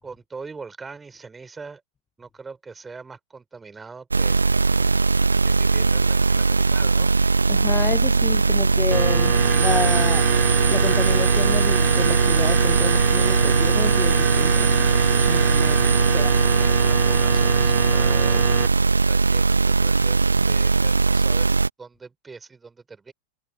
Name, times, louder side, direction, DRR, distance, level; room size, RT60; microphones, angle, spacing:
voice 1, 0.0-1.8 2.2-4.4 5.4-7.1 16.6-21.5 21.8-23.1, right 4 dB, 15° right, 4.9 m, -41 dB
sound 1, 4.1-21.7, right 4 dB, 80° right, 1.0 m, -19 dB
voice 2, 7.5-10.3 10.7-14.9 15.3-15.8 16.1-16.4, left 7 dB, 20° left, 0.9 m, -30 dB
sound 2, 8.9-18.7, right 11 dB, 30° right, 2.1 m, -26 dB
figure-of-eight pair, 90°, 0 cm